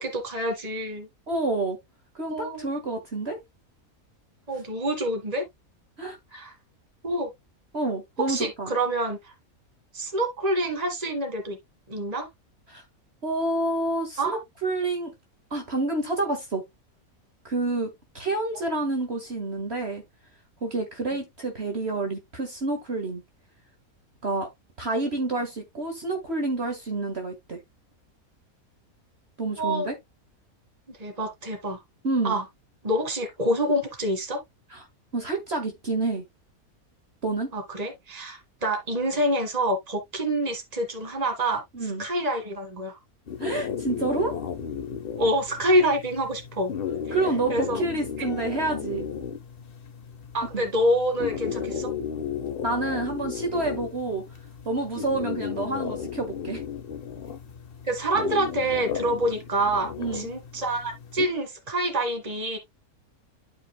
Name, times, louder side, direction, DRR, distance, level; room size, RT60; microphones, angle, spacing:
voice 1, 0.0-1.1 2.3-2.7 4.5-5.4 6.3-6.5 7.0-7.3 8.3-9.3 9.9-11.6 11.9-12.3 14.2-14.4 29.6-29.9 30.9-31.8 32.2-32.4 32.8-34.4 37.5-43.0 45.2-46.7 47.1-47.2 47.5-47.8 50.3-51.9 57.8-62.6, right 1 dB, 25° right, 2.0 m, -27 dB
voice 2, 1.3-1.8 2.2-3.4 6.0-6.2 7.7-8.7 12.7-12.8 13.2-15.1 15.5-16.6 17.4-20.0 20.6-23.2 24.2-24.5 24.8-27.6 29.4-29.9 32.0-32.4 34.7-34.8 35.1-36.2 37.2-37.5 41.7-42.0 43.4-44.4 47.1-49.1 50.5-50.7 52.6-54.2 54.7-56.6 60.0-60.3, right 2 dB, 45° right, 1.9 m, -28 dB
sound 1, 43.3-61.3, left 7 dB, 45° left, 0.9 m, -34 dB
12.5 x 4.9 x 2.2 m
omnidirectional pair, 1.5 m